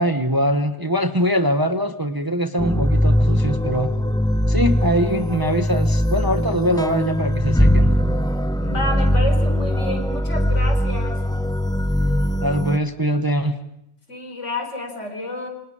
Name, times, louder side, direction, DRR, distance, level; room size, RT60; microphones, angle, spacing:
voice 1, 0.0-3.9 4.5-8.0 12.4-13.5, equal, 20° right, 7 dB, 1.1 m, -22 dB
sound 1, 2.6-12.8, equal, 5° left, 0.7 m, -20 dB
voice 2, 8.6-11.2 14.1-15.5, left 1 dB, 70° left, 4 dB, 4.8 m, -29 dB
28.0 x 25.5 x 5.0 m, 0.78 s
omnidirectional pair, 1.3 m